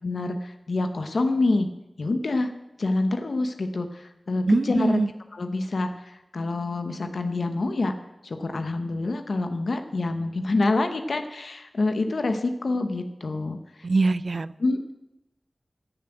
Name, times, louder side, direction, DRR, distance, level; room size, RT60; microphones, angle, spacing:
voice 1, 0.0-1.7 2.0-2.5 2.8-5.0 5.3-8.0 8.2-13.6 14.6-14.9, left 2 dB, 85° left, 7 dB, 0.8 m, -26 dB
voice 2, 4.5-5.1 13.8-14.5, right 3 dB, 75° right, 18 dB, 0.4 m, -23 dB
14.0 x 7.0 x 7.8 m, 0.92 s
wide cardioid pair, 55°, 0 cm